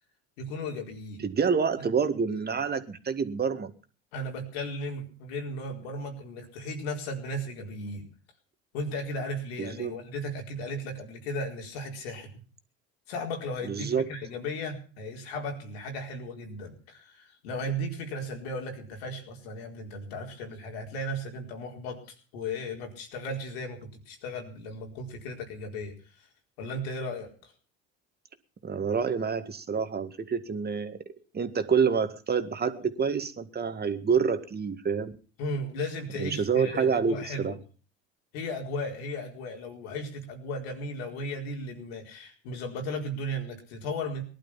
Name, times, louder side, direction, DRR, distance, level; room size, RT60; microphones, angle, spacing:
voice 1, 0.4-1.2 4.1-8.0 8.7-12.3 13.1-22.0 22.3-25.9 26.6-27.5 35.4-37.6 38.3-44.2, left 1 dB, 85° left, 2 dB, 4.4 m, -35 dB
voice 2, 1.2-3.7 9.6-9.9 13.6-14.1 28.6-31.0 31.3-35.1 36.2-37.5, right 6 dB, 30° right, 9 dB, 1.9 m, -27 dB
19.0 x 11.5 x 5.8 m, 0.38 s
supercardioid pair, 80°, 30 cm